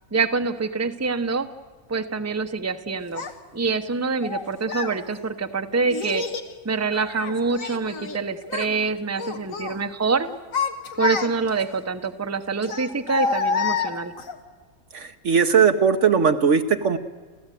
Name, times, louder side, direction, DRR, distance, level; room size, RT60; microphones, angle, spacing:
voice 1, 0.1-1.5 1.9-3.3 3.5-6.2 6.6-10.3 11.0-14.1, right 4 dB, 15° right, 8 dB, 0.8 m, -25 dB
Child speech kid speaking, 3.2-3.3 4.2-5.0 5.9-6.5 6.9-8.2 8.4-8.8 9.2-9.8 10.3-11.6 12.6-14.4, left 5 dB, 80° left, 1.9 m, -28 dB
voice 2, 14.9-17.0, right 6 dB, 65° right, 6 dB, 1.3 m, -19 dB
30.0 x 14.0 x 9.2 m, 1.4 s
omnidirectional pair, 1.4 m